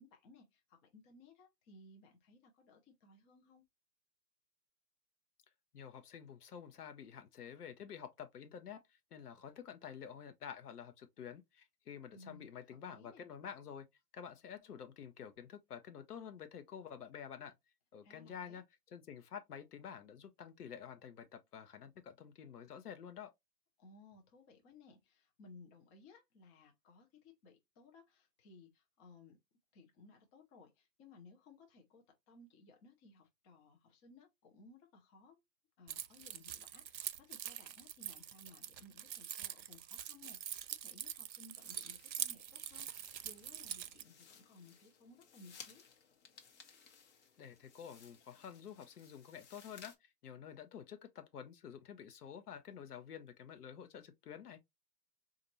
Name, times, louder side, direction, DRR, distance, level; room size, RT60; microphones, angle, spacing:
voice 1, 0.0-3.6 12.1-13.2 18.0-18.6 23.8-29.4 29.7-35.4 35.8-45.8, left 3 dB, 20° left, 0.6 m, -61 dB
voice 2, 5.7-13.9 14.1-17.5 17.9-18.6 18.9-23.3 47.4-54.6, left 8 dB, 65° left, 0.9 m, -50 dB
Keys jangling, 35.9-44.0, right 10 dB, 85° right, 0.6 m, -44 dB
sound 1, 41.5-50.0, left 6 dB, 45° left, 1.0 m, -60 dB
4.1 x 2.5 x 2.9 m
hypercardioid pair, 125°, 49 cm